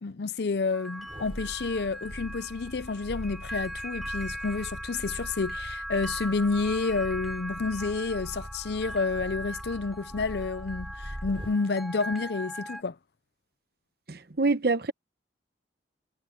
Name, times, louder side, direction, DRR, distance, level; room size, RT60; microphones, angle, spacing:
voice 1, 0.0-13.0, left 4 dB, 65° left, 0.5 m, -30 dB
sound 1, 0.7-12.8, equal, ahead, 3.1 m, -39 dB
sound 2, 1.0-11.7 12.1-12.2, equal, 30° right, 4.9 m, -42 dB
voice 2, 14.1-14.9, right 3 dB, 55° right, 1.0 m, -26 dB
head